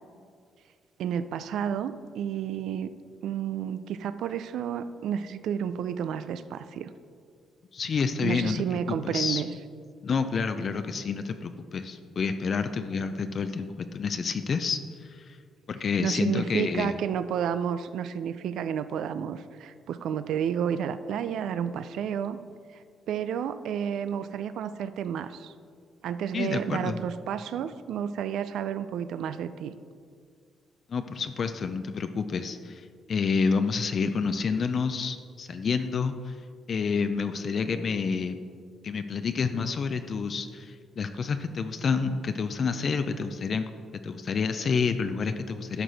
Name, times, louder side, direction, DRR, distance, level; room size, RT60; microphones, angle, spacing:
voice 1, 1.0-2.9 3.2-6.9 8.2-9.5 16.0-22.4 22.7-25.5 26.0-29.7, right 8 dB, 75° right, 13 dB, 0.4 m, -31 dB
voice 2, 7.7-9.4 10.0-15.4 15.7-17.0 26.3-27.0 30.9-36.3 36.7-38.4 38.8-43.6 44.0-45.8, left 5 dB, 50° left, 8 dB, 0.4 m, -29 dB
11.0 x 6.0 x 4.0 m, 2.2 s
cardioid pair, 90°, 0 cm